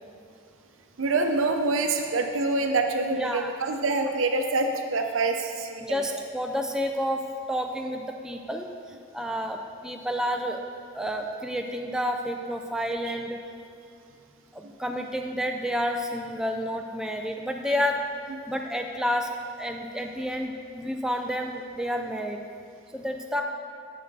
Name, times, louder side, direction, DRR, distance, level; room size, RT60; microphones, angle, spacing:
voice 1, 1.0-6.2, right 3 dB, 85° right, 4 dB, 0.6 m, -26 dB
voice 2, 3.1-3.5 5.8-8.7 9.1-10.6 10.9-13.4 14.5-18.0 18.5-19.3 19.6-22.4 22.9-23.4, equal, 5° right, 3 dB, 0.3 m, -30 dB
8.0 x 5.3 x 4.0 m, 2.6 s
head